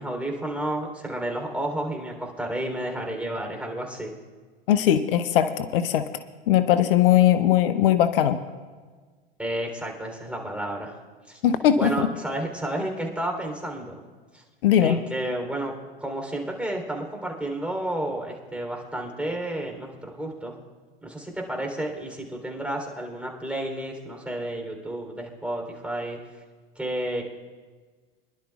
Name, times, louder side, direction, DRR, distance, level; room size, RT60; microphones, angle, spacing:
voice 1, 0.0-4.1 9.4-10.9 11.3-11.4 11.8-14.0 14.3-14.4 14.8-15.7 16.0-20.5 21.0-26.2 26.7-27.2, right 1 dB, 5° right, 1 dB, 3.3 m, -31 dB
voice 2, 4.7-6.0 6.5-8.4 11.4-12.1 14.6-15.0, left 11 dB, 70° left, 11 dB, 0.7 m, -20 dB
25.0 x 11.5 x 2.4 m, 1.4 s
hypercardioid pair, 90°, 29 cm